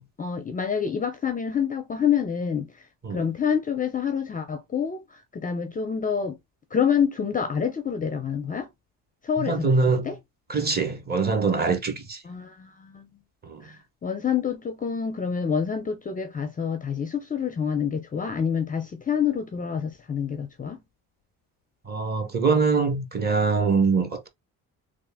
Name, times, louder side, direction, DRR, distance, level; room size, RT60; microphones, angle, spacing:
voice 1, 0.2-2.7 3.1-6.4 6.7-8.7 9.2-10.2 12.2-13.1 13.6-20.8, left 7 dB, 25° left, 0.5 m, -27 dB
voice 2, 9.4-10.1 10.5-12.2 13.4-13.6 21.9-24.3, right 4 dB, 25° right, 0.9 m, -23 dB
3.4 x 2.4 x 3.4 m
cardioid pair, 115°, 37 cm